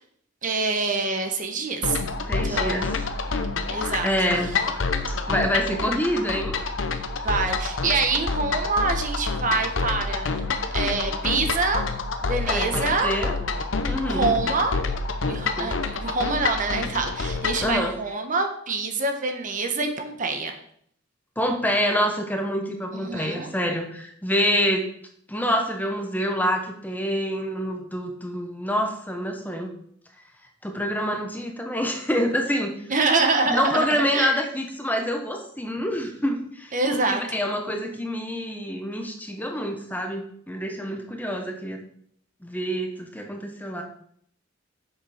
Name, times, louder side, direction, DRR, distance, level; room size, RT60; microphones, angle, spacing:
voice 1, 0.4-2.0 2.4-3.0 3.6-4.1 7.2-10.3 10.7-11.8 12.2-13.1 14.1-14.7 15.2-20.5 22.9-23.5 32.9-34.4 36.7-37.4, right 3 dB, 40° right, 5 dB, 1.1 m, -26 dB
sound 1, 1.8-17.7, left 4 dB, 75° left, 0.9 m, -28 dB
voice 2, 2.3-2.9 3.6-4.5 5.3-6.5 12.5-13.3 13.8-14.3 15.6-15.7 17.6-18.0 21.4-24.9 25.3-29.7 30.6-32.7 33.5-36.8 37.0-41.8 42.4-43.8, equal, 10° left, 3 dB, 1.1 m, -26 dB
7.4 x 6.6 x 5.0 m, 0.65 s
head